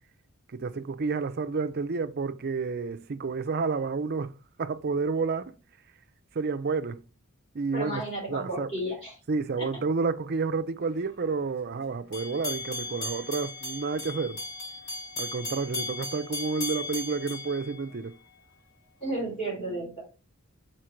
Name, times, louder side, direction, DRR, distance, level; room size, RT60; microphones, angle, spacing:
voice 1, 0.5-5.6 6.3-7.0 7.5-8.0 8.3-8.7 9.3-14.4 15.2-18.2, right 4 dB, 45° right, 0.5 m, -30 dB
voice 2, 7.7-9.1 9.6-9.7 19.0-20.0, right 1 dB, 30° left, 4.0 m, -33 dB
sound 1, 12.1-18.4, left 2 dB, 55° left, 3.5 m, -36 dB
6.4 x 4.4 x 4.4 m
head